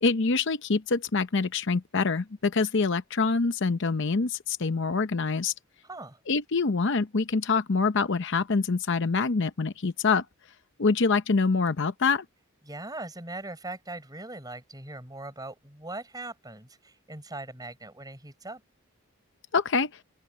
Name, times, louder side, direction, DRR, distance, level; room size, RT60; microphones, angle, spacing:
voice 1, 0.0-5.5 6.3-10.2 10.8-12.2 19.5-20.0, left 4 dB, 55° left, 0.7 m, -25 dB
voice 2, 5.8-6.2 12.6-18.6, right 2 dB, 20° right, 6.2 m, -40 dB
open air
head